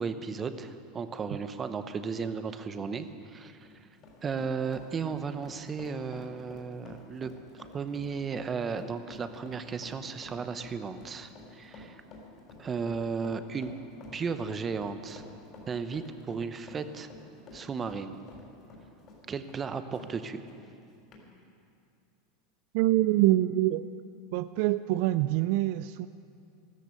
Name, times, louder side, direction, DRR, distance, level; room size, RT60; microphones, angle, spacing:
voice 1, 0.0-3.6 4.2-12.0 12.6-13.7 14.1-15.2 15.7-17.1 17.5-18.2 19.3-20.4, right 5 dB, 25° right, 10 dB, 0.8 m, -35 dB
Run, 3.5-20.1 20.5-20.6 21.1-21.2, left 2 dB, 40° left, 3.8 m, -50 dB
voice 2, 22.7-23.8 24.3-26.1, right 15 dB, 65° right, 13 dB, 0.3 m, -25 dB
13.5 x 13.5 x 6.6 m, 2.5 s
supercardioid pair, 125°, 0 cm